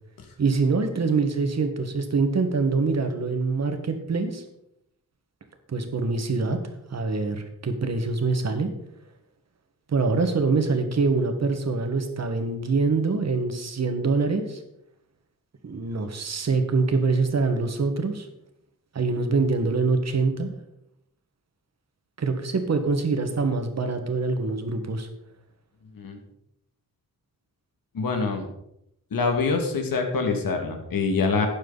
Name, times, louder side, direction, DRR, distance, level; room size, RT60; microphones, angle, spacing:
voice 1, 0.4-4.4 5.7-6.6 6.9-8.7 9.9-14.6 15.6-18.3 18.9-20.5 22.2-25.1, right 4 dB, 50° right, 6 dB, 1.7 m, -24 dB
voice 2, 27.9-28.5 29.1-31.5, left 4 dB, 80° left, 4 dB, 2.2 m, -25 dB
12.5 x 9.4 x 4.0 m, 0.79 s
wide cardioid pair, 135°, 34 cm